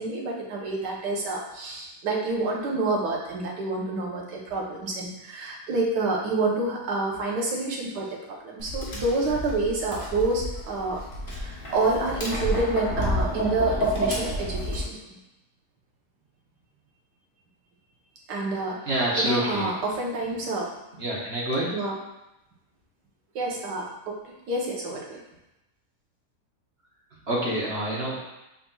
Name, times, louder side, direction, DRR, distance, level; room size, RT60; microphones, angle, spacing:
voice 1, 0.0-11.0 11.4-15.2 18.3-18.8 19.2-20.7 21.7-21.9 23.3-25.2, right 2 dB, 85° right, -2 dB, 1.5 m, -28 dB
Tap, 8.6-14.8, equal, 35° left, 1.0 m, -29 dB
voice 2, 18.8-19.7 21.0-21.7 27.1-28.2, right 1 dB, 45° right, -5 dB, 1.1 m, -27 dB
5.5 x 4.0 x 2.3 m, 0.92 s
omnidirectional pair, 1.8 m